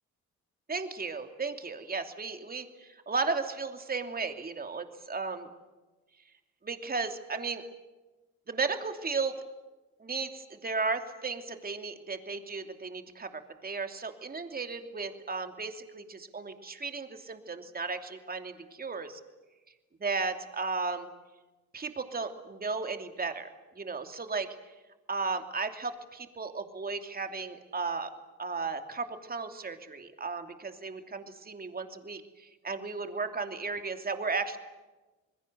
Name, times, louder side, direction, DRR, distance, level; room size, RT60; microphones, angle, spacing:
voice 1, 0.7-5.5 6.6-7.6 8.5-9.4 10.0-19.2 20.0-21.1 21.7-24.5 25.1-28.1 28.4-34.6, right 4 dB, 30° right, 6 dB, 2.9 m, -35 dB
27.5 x 21.0 x 8.1 m, 1.1 s
cardioid pair, 90°, 30 cm